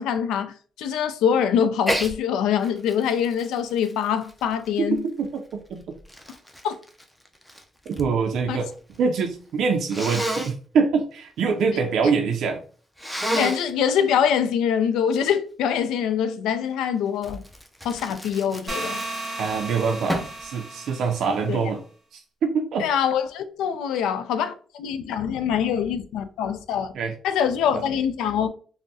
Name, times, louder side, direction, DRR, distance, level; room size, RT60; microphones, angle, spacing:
voice 1, 0.0-5.0 6.6-6.7 8.5-8.6 13.3-17.4 17.8-19.0 21.5-21.6 22.8-26.9 27.2-28.5, left 8 dB, 90° left, 0.3 m, -24 dB
Sneeze, 1.8-2.1 2.6-5.0 5.7-8.1 8.4-9.0 9.9-10.5 13.0-13.7 17.2-19.5 20.1-20.4, equal, 5° left, 0.5 m, -31 dB
voice 2, 5.2-6.0 7.9-12.6 19.4-21.8 22.1-22.9 25.3-25.4 26.9-27.1 27.7-27.8, right 5 dB, 70° right, 0.4 m, -25 dB
sound 1, 18.7-21.6, right 2 dB, 30° right, 0.7 m, -34 dB
3.4 x 2.0 x 2.6 m
cardioid pair, 90°, 0 cm